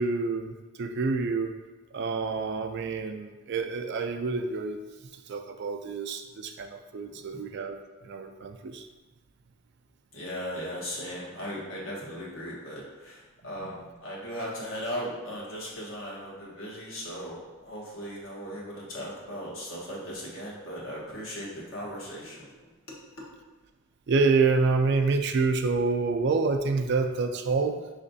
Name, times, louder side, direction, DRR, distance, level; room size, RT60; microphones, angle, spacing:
voice 1, 0.0-1.5 1.9-4.8 5.3-7.8 8.0-8.9 13.6-13.7 24.1-27.8, right 4 dB, 60° right, 6 dB, 0.4 m, -27 dB
voice 2, 10.1-23.0, equal, 80° left, -4 dB, 1.3 m, -38 dB
5.8 x 3.1 x 2.7 m, 1.2 s
head